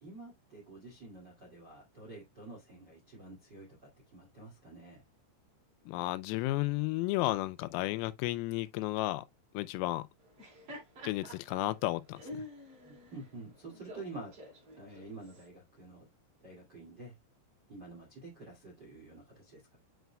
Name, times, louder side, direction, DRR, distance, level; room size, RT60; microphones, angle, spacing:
voice 1, 0.0-5.0 12.8-14.3 14.8-16.0 16.4-17.1 17.7-19.8, right 2 dB, 45° right, 1.3 m, -49 dB
voice 2, 5.9-9.3 9.5-10.1 11.0-12.5, left 18 dB, 85° left, 3.3 m, -33 dB
Laughter, 10.2-15.5, left 1 dB, 30° right, 3.5 m, -49 dB
9.3 x 4.9 x 2.2 m
omnidirectional pair, 6.0 m